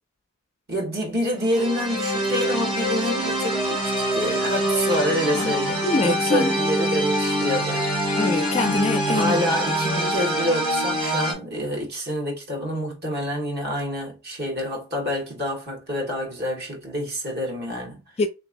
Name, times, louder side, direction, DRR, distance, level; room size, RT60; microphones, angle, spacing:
voice 1, 0.7-8.0 9.1-18.0, equal, 50° right, 1.5 m, -27 dB
sound 1, 1.4-11.3, equal, 20° right, 1.8 m, -24 dB
voice 2, 5.8-6.6 8.2-9.4 18.2-18.3, left 3 dB, 25° left, 0.3 m, -24 dB
3.6 x 3.0 x 2.5 m
head